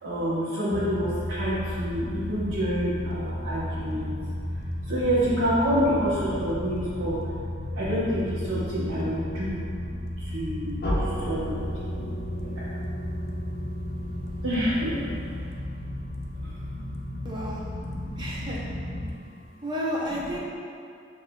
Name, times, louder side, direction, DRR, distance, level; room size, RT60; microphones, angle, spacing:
voice 1, 0.0-4.2 4.9-7.2 7.8-9.6 10.2-12.1 12.3-12.8 14.4-15.0 16.4-16.5 17.7-18.2 18.7-19.2 20.1-20.4, equal, 85° right, -12 dB, 0.9 m, -28 dB
sound 1, 0.7-19.1, left 1 dB, 85° left, 0.5 m, -34 dB
sound 2, 10.8-15.6, equal, 50° left, 0.8 m, -35 dB
voice 2, 17.2-17.6 18.2-18.6 19.6-20.4, equal, 20° right, -5 dB, 0.6 m, -31 dB
6.9 x 2.5 x 2.2 m, 2.5 s
head